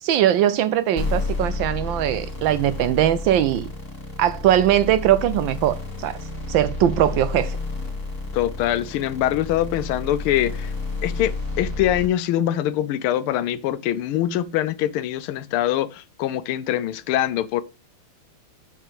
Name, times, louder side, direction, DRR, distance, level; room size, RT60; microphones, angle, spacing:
voice 1, 0.0-3.7 4.2-6.2 6.5-7.6, right 11 dB, 75° right, 1.2 m, -20 dB
sound 1, 1.0-12.1, left 3 dB, 25° left, 2.3 m, -30 dB
voice 2, 8.3-10.7 11.0-17.6, left 12 dB, 80° left, 1.5 m, -23 dB
6.5 x 5.9 x 5.1 m
omnidirectional pair, 2.4 m